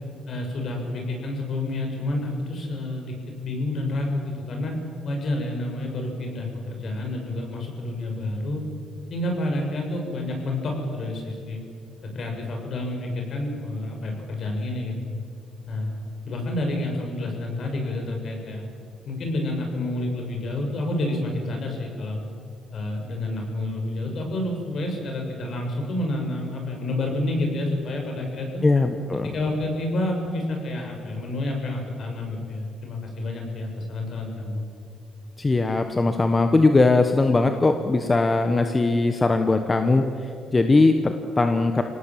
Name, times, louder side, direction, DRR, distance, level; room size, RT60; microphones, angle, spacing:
voice 1, 0.3-4.7 5.0-8.6 9.1-11.6 12.1-15.0 15.7-16.0 16.2-18.6 19.0-22.2 22.7-28.6 29.2-34.6, left 1 dB, 60° left, 2 dB, 6.7 m, -29 dB
voice 2, 28.6-29.3 35.4-41.8, left 3 dB, 25° left, 7 dB, 1.4 m, -20 dB
26.0 x 18.0 x 7.7 m, 2.4 s
cardioid pair, 90°, 0 cm